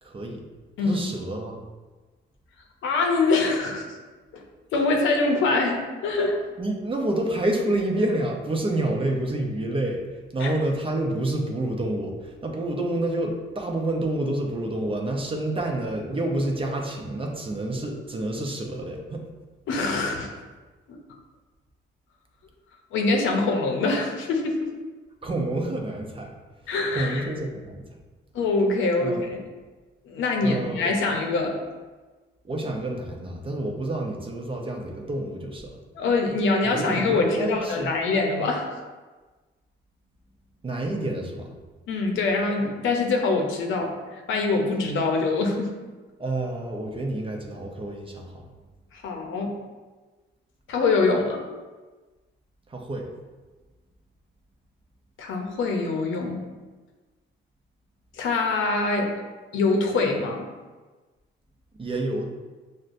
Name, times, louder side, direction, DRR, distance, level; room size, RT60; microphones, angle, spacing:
voice 1, 0.0-0.4 0.8-1.6 6.6-19.2 25.2-26.3 26.9-27.8 29.0-29.3 30.4-30.9 32.4-35.8 36.6-37.9 40.6-41.5 46.2-48.5 52.7-53.1 61.8-62.3, right 1 dB, 25° right, 1 dB, 0.6 m, -28 dB
voice 2, 2.8-4.0 4.3-4.4 4.7-6.4 10.4-10.5 19.7-20.3 20.9-21.0 22.9-24.7 26.7-27.2 28.3-29.4 30.1-31.6 35.9-38.8 41.9-45.7 48.9-49.6 50.7-51.4 55.2-56.4 58.1-59.1 59.5-60.5, left 3 dB, 80° left, 2 dB, 0.7 m, -24 dB
6.1 x 2.2 x 2.5 m, 1.3 s
cardioid pair, 90°, 20 cm